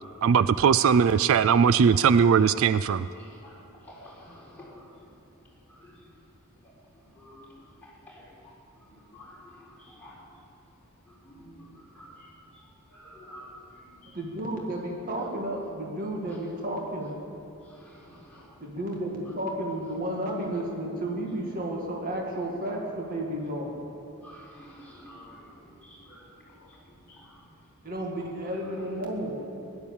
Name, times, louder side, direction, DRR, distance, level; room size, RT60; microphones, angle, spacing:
voice 1, 0.2-3.1, right 6 dB, 65° right, 15 dB, 0.3 m, -20 dB
voice 2, 0.8-1.3 3.2-5.1 5.7-6.1 6.6-10.3 11.1-14.2 17.6-18.6 24.2-27.5 28.6-28.9, equal, 10° left, -7 dB, 4.1 m, -51 dB
voice 3, 14.1-17.2 18.6-23.8 27.8-29.4, right 1 dB, 40° right, -1 dB, 1.9 m, -32 dB
16.5 x 11.0 x 7.2 m, 2.9 s
head